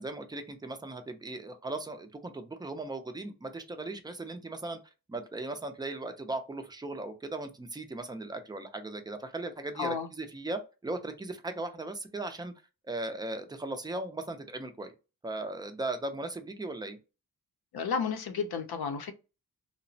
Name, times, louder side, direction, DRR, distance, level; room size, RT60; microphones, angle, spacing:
voice 1, 0.0-4.8 5.1-12.5 12.8-14.9 15.2-17.0, right 2 dB, 10° right, 0.3 m, -37 dB
voice 2, 9.8-10.1 17.7-19.1, left 6 dB, 80° left, 0.6 m, -32 dB
2.8 x 2.0 x 2.6 m
wide cardioid pair, 130°, 38 cm